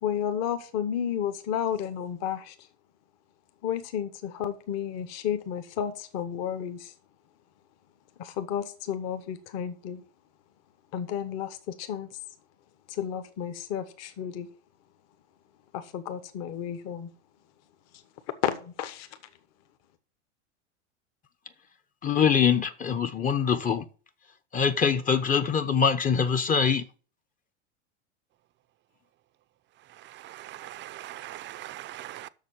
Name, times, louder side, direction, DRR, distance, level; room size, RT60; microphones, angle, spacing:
voice 1, 0.0-2.5 3.6-6.9 8.2-10.0 10.9-12.1 12.9-14.5 15.7-17.1 18.4-19.1, left 9 dB, 45° left, 1.4 m, -32 dB
voice 2, 22.0-23.8 24.5-26.8, left 6 dB, 20° left, 0.8 m, -23 dB
voice 3, 29.9-32.3, right 14 dB, 30° right, 0.6 m, -41 dB
7.3 x 6.4 x 7.4 m
hypercardioid pair, 95°, 36 cm